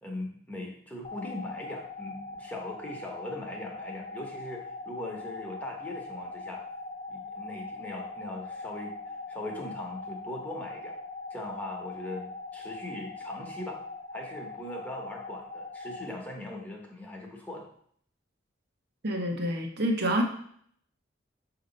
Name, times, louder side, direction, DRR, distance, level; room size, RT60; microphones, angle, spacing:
voice 1, 0.0-6.6 7.1-11.0 11.3-13.8 14.1-17.7, left 1 dB, 10° left, -1 dB, 1.1 m, -40 dB
sound 1, 1.0-16.1, left 2 dB, 35° left, 0.5 m, -41 dB
voice 2, 19.0-20.2, right 1 dB, 60° right, 3 dB, 1.0 m, -27 dB
6.3 x 2.9 x 5.3 m, 0.63 s
head